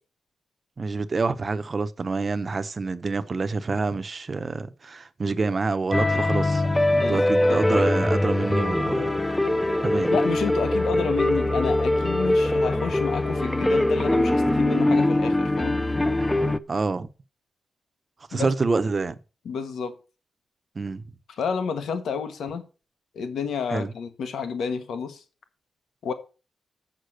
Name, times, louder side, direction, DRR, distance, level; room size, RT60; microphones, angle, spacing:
voice 1, 0.8-9.1 9.8-10.1 16.7-17.1 18.3-19.2 20.8-21.0 23.7-23.9, right 4 dB, 30° right, 0.7 m, -27 dB
sound 1, 5.9-16.6, left 1 dB, 10° left, 0.5 m, -22 dB
voice 2, 10.1-15.8 18.3-18.5 19.4-19.9 21.4-22.6 23.1-25.2 26.0-26.1, left 6 dB, 90° left, 1.4 m, -30 dB
7.4 x 6.6 x 6.3 m
wide cardioid pair, 160°, 0 cm